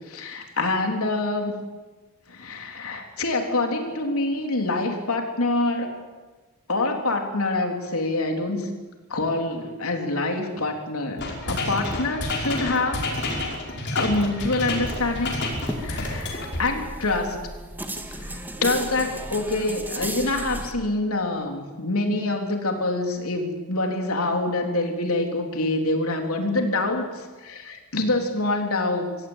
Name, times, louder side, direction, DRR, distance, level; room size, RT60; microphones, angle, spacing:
voice 1, 0.1-1.6 2.3-5.9 6.7-8.7 9.1-13.0 13.9-15.4 15.8-17.4 18.1-29.1, left 2 dB, 85° left, 3 dB, 3.6 m, -26 dB
sound 1, 11.2-16.6, left 2 dB, 55° left, 5.6 m, -29 dB
sound 2, 14.8-20.7, right 1 dB, 10° right, 1.8 m, -35 dB
24.5 x 16.5 x 8.9 m, 1.3 s
head